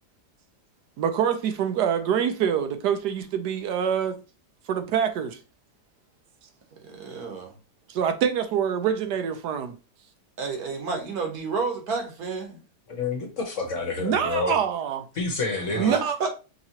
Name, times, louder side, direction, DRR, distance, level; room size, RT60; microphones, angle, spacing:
voice 1, 1.0-4.2 4.7-5.4 7.9-9.7 14.0-15.0 15.8-16.3, right 8 dB, 80° right, 1.3 m, -25 dB
voice 2, 6.9-7.5 10.4-12.6 15.7-16.3, right 4 dB, 65° right, 1.5 m, -30 dB
voice 3, 12.9-14.6 15.2-16.0, left 3 dB, 55° left, 1.2 m, -28 dB
5.5 x 3.0 x 2.8 m
omnidirectional pair, 1.8 m